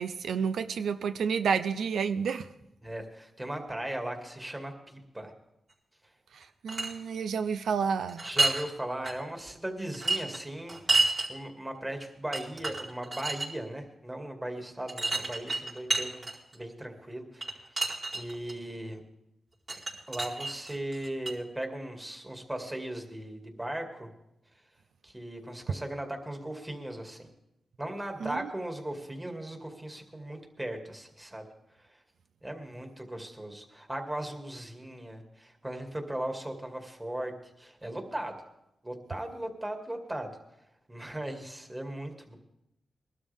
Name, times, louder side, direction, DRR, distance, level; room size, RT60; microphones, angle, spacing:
voice 1, 0.0-2.5 6.6-8.2 28.2-28.4, right 6 dB, 85° right, 10 dB, 0.4 m, -30 dB
voice 2, 2.8-5.3 8.2-16.3 16.5-17.8 18.1-19.0 20.1-24.1 25.0-27.3 27.8-31.4 31.8-31.9 32.4-37.3 37.6-38.3 38.8-40.3 40.9-42.4, right 1 dB, 15° right, 4 dB, 2.3 m, -38 dB
sound 1, 6.4-6.9 8.1-8.6 9.0-9.1 9.9-11.3 12.0-12.1 12.3-13.5 14.9-16.6 17.4-18.5 19.7-21.3, right 3 dB, 45° right, 4.4 m, -29 dB
21.5 x 12.5 x 3.6 m, 0.86 s
cardioid pair, 75°, 0 cm